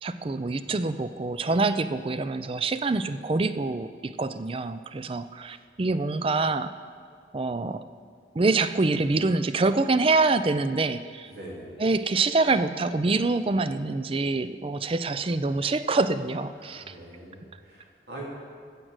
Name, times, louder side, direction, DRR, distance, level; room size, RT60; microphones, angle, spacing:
voice 1, 0.0-6.7 7.3-7.9 8.3-11.3 11.8-17.0, right 3 dB, 30° right, 12 dB, 0.4 m, -26 dB
voice 2, 11.3-11.8 16.6-18.2, right 1 dB, 65° right, -4 dB, 3.4 m, -43 dB
15.0 x 6.2 x 8.0 m, 2.1 s
head